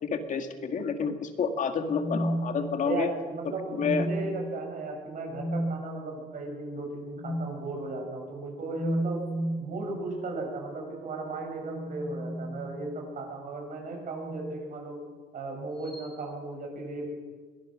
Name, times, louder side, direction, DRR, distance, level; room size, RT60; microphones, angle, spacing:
voice 1, 0.0-3.1 3.7-4.1, left 5 dB, 50° left, 7 dB, 2.0 m, -29 dB
sound 1, 1.8-3.1 3.7-4.5 5.3-5.8 7.2-7.5 8.7-9.7 11.2-13.1 14.1-14.6 15.8-16.1, equal, 30° left, 2.7 m, -33 dB
voice 2, 2.8-9.2 9.6-15.0 15.3-17.1, right 3 dB, 50° right, 1 dB, 7.1 m, -36 dB
23.0 x 18.0 x 6.4 m, 1.4 s
cardioid pair, 110°, 17 cm